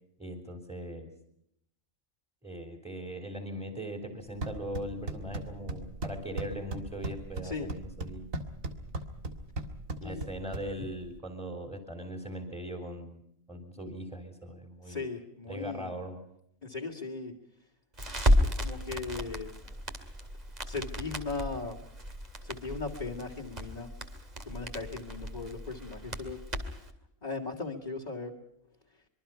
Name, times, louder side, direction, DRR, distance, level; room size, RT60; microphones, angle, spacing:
voice 1, 0.2-1.1 2.4-8.3 10.0-13.2 13.5-15.1 15.5-16.2, right 1 dB, ahead, 4 dB, 3.5 m, -40 dB
sound 1, 4.2-11.2, right 1 dB, 75° right, 2.4 m, -39 dB
voice 2, 14.8-15.9 16.6-17.4 18.4-19.5 20.6-21.8 22.4-23.9 24.4-26.4 27.2-28.3, left 4 dB, 30° left, -2 dB, 2.4 m, -38 dB
Crackle, 18.0-26.9, equal, 30° right, 2.6 m, -33 dB
25.5 x 23.5 x 5.7 m, 0.74 s
omnidirectional pair, 1.4 m